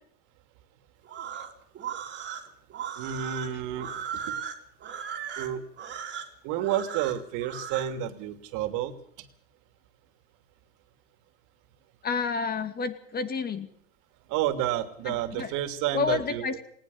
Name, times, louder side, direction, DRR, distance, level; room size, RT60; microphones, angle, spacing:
sound 1, 1.0-7.9, right 8 dB, 30° right, 3.2 m, -37 dB
voice 1, 3.0-4.4 5.4-5.6 6.4-9.3 14.3-16.5, right 11 dB, 50° right, 9 dB, 2.9 m, -30 dB
voice 2, 12.0-13.7 15.4-15.5 15.9-16.6, left 5 dB, 25° left, 10 dB, 2.5 m, -29 dB
19.5 x 19.5 x 7.2 m, 0.65 s
supercardioid pair, 125°, 38 cm